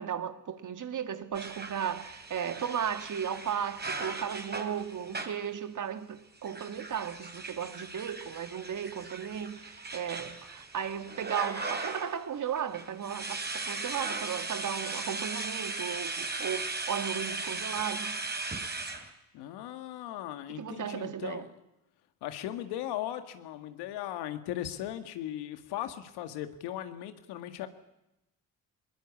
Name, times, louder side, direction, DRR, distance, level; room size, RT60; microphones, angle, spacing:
voice 1, 0.0-18.2 20.5-21.5, right 8 dB, 50° right, 2.0 m, -35 dB
sound 1, 1.3-5.5 6.4-12.2 12.6-19.1, right 3 dB, 25° right, 3.6 m, -38 dB
voice 2, 19.3-21.5 22.2-27.7, left 12 dB, 85° left, 2.0 m, -38 dB
22.0 x 20.5 x 8.5 m
supercardioid pair, 70°, 38 cm